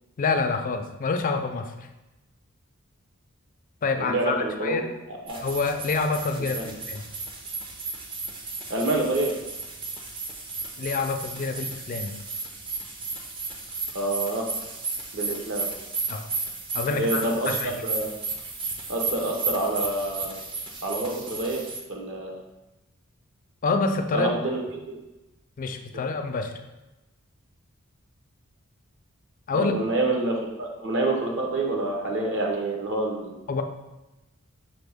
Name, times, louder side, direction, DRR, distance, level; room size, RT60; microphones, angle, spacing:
voice 1, 0.2-1.7 3.8-4.4 4.6-4.8 5.4-7.0 10.8-12.1 16.1-16.3 16.7-17.7 23.6-24.3 25.6-26.5 29.5-29.7 33.5-33.6, left 4 dB, 40° left, 6 dB, 0.3 m, -27 dB
voice 2, 4.0-4.8 5.1-5.4 6.5-6.7 8.7-9.3 13.9-14.5 15.1-15.7 16.9-18.1 18.9-20.4 20.8-21.6 21.9-22.4 24.1-24.6 29.5-33.3, right 2 dB, 60° right, 0 dB, 0.8 m, -27 dB
sound 1, 5.3-21.8, right 3 dB, 25° right, 0.4 m, -34 dB
5.9 x 2.1 x 3.4 m, 1.0 s
head